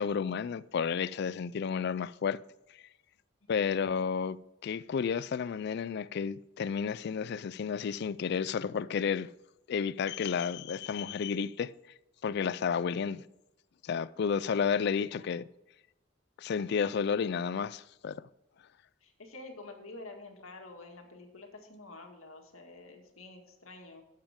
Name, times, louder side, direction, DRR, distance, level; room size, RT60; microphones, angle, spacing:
voice 1, 0.0-2.4 3.5-9.3 9.7-11.7 12.2-13.2 13.8-15.4 16.4-18.2, left 6 dB, 50° left, 0.3 m, -31 dB
voice 2, 3.4-3.8 15.0-15.4 19.0-24.0, left 2 dB, 80° left, 2.0 m, -49 dB
11.5 x 7.6 x 3.6 m
head